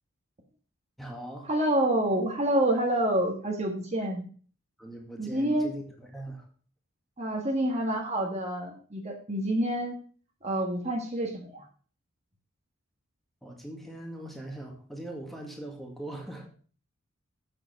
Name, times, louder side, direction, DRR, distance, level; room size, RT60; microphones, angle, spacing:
voice 1, 1.0-1.5 4.8-6.5 13.4-16.5, right 1 dB, ahead, 0 dB, 1.9 m, -41 dB
voice 2, 1.5-4.3 5.2-5.7 7.2-10.0 10.4-11.6, right 1 dB, 30° right, 2 dB, 1.5 m, -27 dB
7.8 x 6.8 x 6.5 m, 0.43 s
head